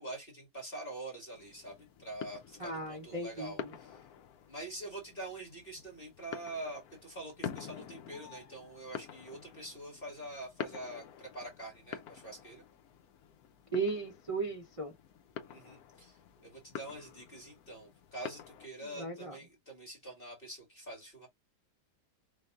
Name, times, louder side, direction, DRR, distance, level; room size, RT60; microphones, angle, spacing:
voice 1, 0.0-4.0 4.5-12.6 15.5-21.3, right 1 dB, 35° left, 2.0 m, -45 dB
sound 1, 1.3-18.7, left 8 dB, 70° left, 1.1 m, -48 dB
voice 2, 2.6-3.5 13.7-14.9 19.0-19.4, right 3 dB, 60° right, 0.3 m, -36 dB
4.6 x 3.3 x 2.4 m
omnidirectional pair, 1.8 m